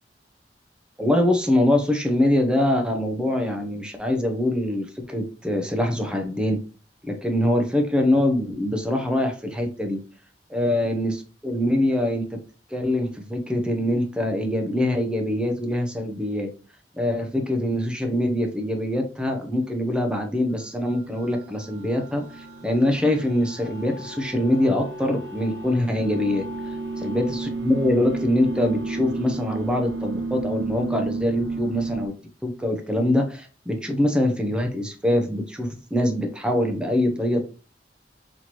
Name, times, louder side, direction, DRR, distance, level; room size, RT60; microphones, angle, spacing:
voice 1, 1.0-6.6 7.0-10.0 10.5-12.4 12.7-16.5 17.0-26.4 27.0-32.1 32.4-37.4, left 1 dB, 5° right, 4 dB, 0.6 m, -24 dB
sound 1, 20.7-32.1, right 3 dB, 80° right, 0.5 m, -32 dB
4.2 x 3.0 x 3.0 m, 0.36 s
head